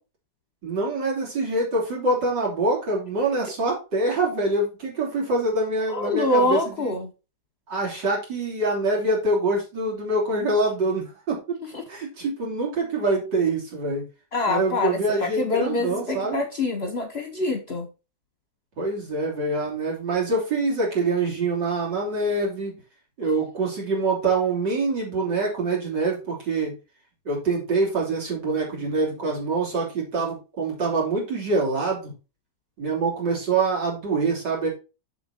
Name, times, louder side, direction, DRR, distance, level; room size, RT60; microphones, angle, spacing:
voice 1, 0.6-6.9 7.7-11.4 11.9-14.0 14.5-16.4 18.8-22.8 23.2-26.8 27.3-32.1 32.8-34.7, right 3 dB, 75° right, -2 dB, 3.9 m, -25 dB
voice 2, 5.9-7.1 11.6-11.8 14.3-17.9, left 2 dB, 45° left, 6 dB, 1.0 m, -25 dB
7.1 x 6.3 x 4.0 m, 0.30 s
omnidirectional pair, 1.9 m